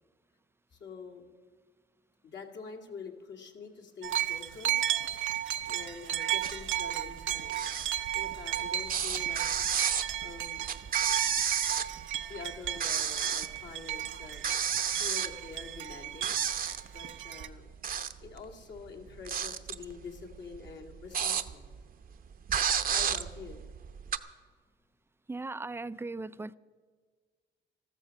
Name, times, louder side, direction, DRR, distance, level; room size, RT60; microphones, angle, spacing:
voice 1, 0.7-1.2 2.2-5.0 5.7-7.7 8.0-9.4 10.2-10.7 12.3-14.4 14.9-16.4 16.9-17.7 18.2-21.7 22.9-23.6, left 5 dB, 65° left, 2.1 m, -46 dB
sound 1, 4.0-17.5, right 12 dB, 80° right, 0.7 m, -34 dB
sound 2, 6.4-6.8 7.0-8.6 8.9-12.2 12.5-13.6 13.9-14.0 14.4-15.9 16.2-17.0 17.6-18.4 18.8-21.8 22.1-22.2 22.5-24.2, right 7 dB, 45° right, 0.7 m, -31 dB
voice 2, 25.3-26.5, right 3 dB, 10° right, 0.4 m, -38 dB
13.5 x 13.5 x 6.3 m
cardioid pair, 90°, 20 cm